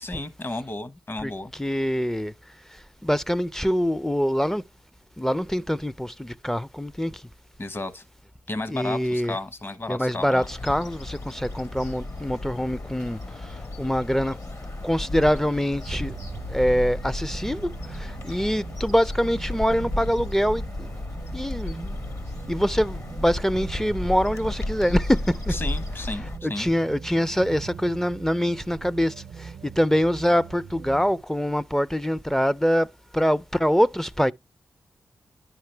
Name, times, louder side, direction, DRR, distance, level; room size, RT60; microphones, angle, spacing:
voice 1, 0.0-1.5 7.6-8.0 8.5-10.5 25.5-26.7, left 2 dB, 35° left, 1.0 m, -33 dB
voice 2, 1.2-2.3 2.7-4.6 5.2-7.2 8.7-9.4 9.9-14.4 14.8-16.2 16.5-20.9 21.3-22.0 22.5-25.6 26.2-32.9 33.1-34.3, equal, 5° left, 0.4 m, -24 dB
sound 1, 10.4-26.4, left 2 dB, 55° left, 1.5 m, -34 dB
sound 2, 15.9-31.2, right 7 dB, 85° right, 0.5 m, -41 dB
10.0 x 5.7 x 3.3 m
cardioid pair, 55°, 7 cm